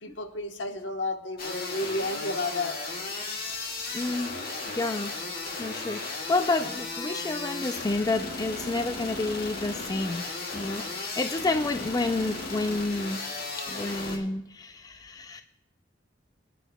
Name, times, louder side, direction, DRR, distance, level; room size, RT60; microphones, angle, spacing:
voice 1, 0.0-2.8, left 2 dB, 75° left, 5 dB, 1.1 m, -31 dB
sound 1, 1.4-14.2, left 3 dB, 55° left, 1.8 m, -35 dB
voice 2, 3.9-4.3 4.7-5.1 5.6-10.2 10.5-13.2 13.7-15.4, left 2 dB, 20° left, 8 dB, 0.3 m, -29 dB
21.5 x 9.9 x 2.2 m, 0.78 s
head